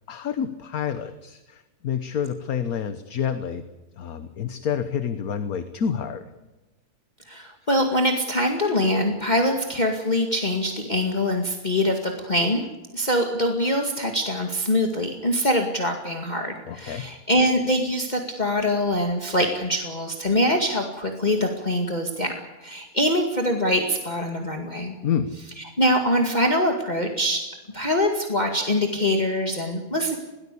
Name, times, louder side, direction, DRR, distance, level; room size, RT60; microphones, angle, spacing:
voice 1, 0.1-3.6 4.0-6.2 16.7-17.1 25.0-25.3, left 8 dB, 65° left, 11 dB, 1.5 m, -28 dB
voice 2, 7.3-12.7 12.9-22.4 22.6-24.9 25.6-27.4 27.7-30.1, left 1 dB, 25° left, 3 dB, 2.2 m, -24 dB
22.0 x 19.0 x 8.5 m, 1.1 s
omnidirectional pair, 1.7 m